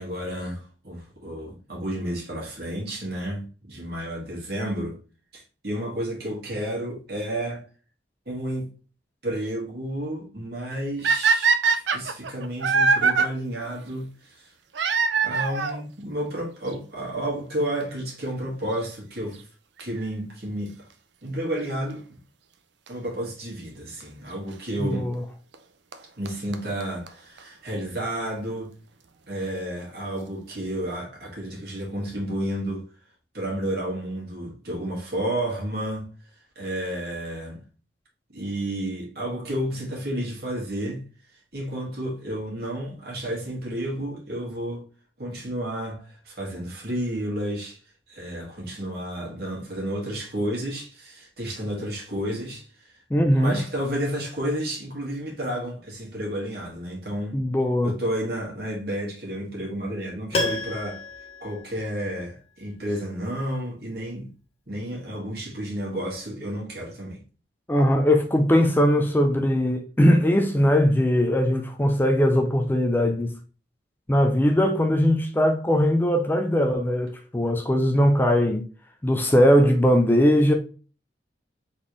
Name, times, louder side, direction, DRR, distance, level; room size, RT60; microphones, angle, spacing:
voice 1, 0.0-5.0 5.3-7.7 8.3-8.7 9.2-14.5 15.2-19.5 19.8-20.9 21.2-22.2 22.9-25.1 26.2-28.7 29.3-32.8 33.3-36.1 36.6-37.6 38.3-41.0 41.5-44.8 45.2-47.8 48.1-52.6 53.3-57.4 57.8-61.0 61.4-64.3 64.7-67.2, right 1 dB, 60° right, 2.0 m, -31 dB
sound 1, 11.0-13.3 14.7-15.8 16.7-16.8 17.5-17.6 17.8-17.9 19.8-20.0 22.9-23.0 24.0-24.1 25.5-25.6 25.9-26.0 26.3-26.4 26.5-26.6 26.8-26.9 27.1-27.2 27.4-27.5, right 5 dB, 80° right, 0.6 m, -22 dB
voice 2, 24.8-25.2 53.1-53.6 57.3-57.9 67.7-73.3 74.1-78.6 79.0-80.5, equal, 10° left, 0.4 m, -20 dB
Piano, 60.3-62.4 62.7-62.8, left 2 dB, 35° left, 0.8 m, -31 dB
4.1 x 3.4 x 3.1 m
head